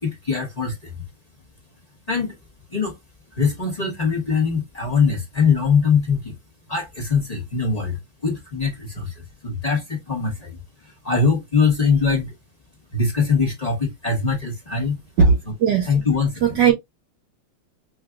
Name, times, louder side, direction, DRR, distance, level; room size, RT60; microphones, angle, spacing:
voice 1, 0.0-0.9 2.1-2.4 2.7-3.0 3.3-6.4 6.7-12.3 12.9-15.0 15.8-16.6, left 5 dB, 30° left, 0.7 m, -22 dB
voice 2, 15.2-15.9 16.4-16.7, right 6 dB, 65° right, 1.4 m, -17 dB
6.0 x 2.4 x 2.2 m
omnidirectional pair, 2.3 m